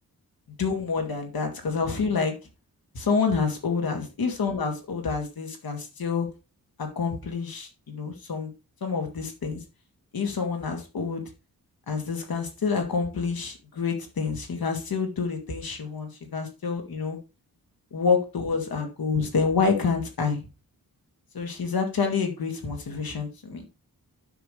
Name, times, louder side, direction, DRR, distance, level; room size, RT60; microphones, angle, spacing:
voice 1, 0.6-2.3 2.9-6.3 6.8-8.5 8.8-9.6 10.1-11.2 11.9-17.2 17.9-20.4 21.3-23.6, left 5 dB, 75° left, 3 dB, 2.5 m, -28 dB
9.8 x 6.9 x 3.3 m, 0.28 s
wide cardioid pair, 175°, 36 cm